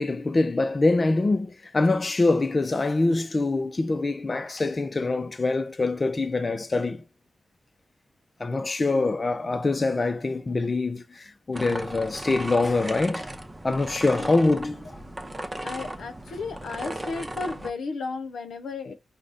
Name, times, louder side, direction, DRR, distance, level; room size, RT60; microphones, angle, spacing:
voice 1, 0.0-7.0 8.4-13.3 13.6-14.8, left 3 dB, 45° left, 0.5 m, -24 dB
voice 2, 8.9-9.2 14.1-14.4 15.6-18.9, left 4 dB, 85° left, 0.7 m, -34 dB
sound 1, 11.5-17.7, right 1 dB, 30° right, 0.7 m, -36 dB
4.7 x 2.2 x 3.9 m
cardioid pair, 45°, 0 cm